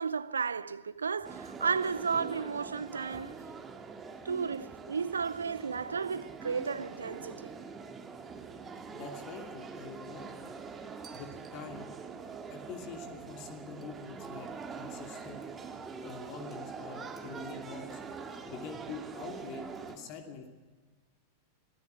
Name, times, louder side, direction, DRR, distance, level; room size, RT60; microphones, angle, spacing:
voice 1, 0.0-3.4 4.2-7.6, right 5 dB, 75° right, 0.6 m, -33 dB
sound 1, 1.2-20.0, right 5 dB, 20° right, 2.1 m, -44 dB
voice 2, 8.9-10.3 11.1-11.9 12.5-15.4 16.0-18.0 18.5-20.5, left 5 dB, 40° left, 2.6 m, -45 dB
23.5 x 15.5 x 7.9 m
figure-of-eight pair, 90°, 0 cm